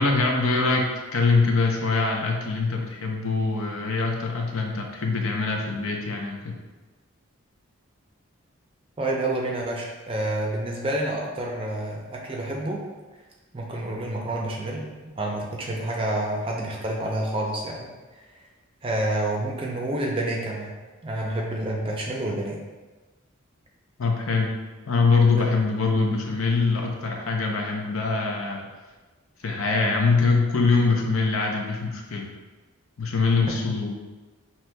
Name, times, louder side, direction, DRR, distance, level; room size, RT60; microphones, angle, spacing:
voice 1, 0.0-6.6 24.0-24.5 24.9-28.6 29.4-32.3 33.0-33.9, left 4 dB, 75° left, 1 dB, 0.6 m, -23 dB
voice 2, 9.0-12.8 13.5-14.8 15.2-17.9 18.8-20.8 21.0-22.6 25.4-25.5, right 1 dB, 25° right, -1 dB, 0.5 m, -28 dB
5.9 x 2.9 x 2.2 m, 1.2 s
head